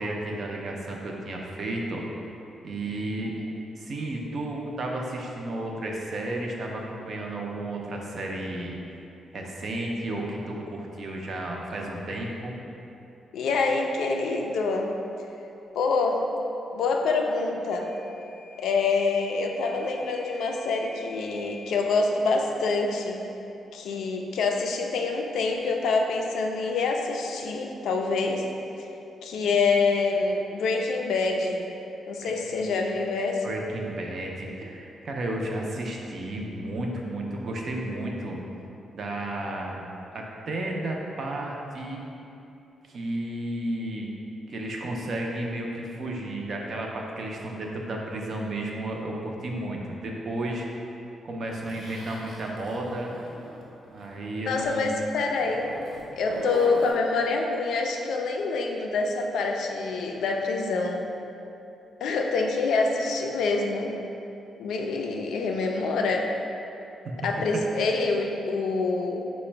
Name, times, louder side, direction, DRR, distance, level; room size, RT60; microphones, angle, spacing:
voice 1, 0.0-2.0 2.6-3.4 3.8-8.8 9.3-12.5 32.2-32.7 33.4-38.4 38.9-39.9 40.1-42.0 42.9-44.1 44.5-50.7 51.2-53.1 53.9-54.9 67.0-67.2, right 1 dB, 40° right, 0 dB, 0.4 m, -33 dB
voice 2, 13.3-14.9 15.7-16.2 16.7-17.9 18.6-23.2 23.7-28.4 29.2-31.6 32.1-33.5 54.5-55.7 56.1-61.0 62.0-63.9 64.6-66.3 67.2-69.3, left 3 dB, 80° left, 2 dB, 0.3 m, -26 dB
Microwave oven / Alarm, 17.7-21.8, left 3 dB, 35° left, 0.6 m, -48 dB
Zipper (clothing), 51.6-54.1 54.4-54.7 55.3-56.9, right 1 dB, 70° right, 1.0 m, -39 dB
4.8 x 2.1 x 4.4 m, 2.9 s
wide cardioid pair, 170°, 0 cm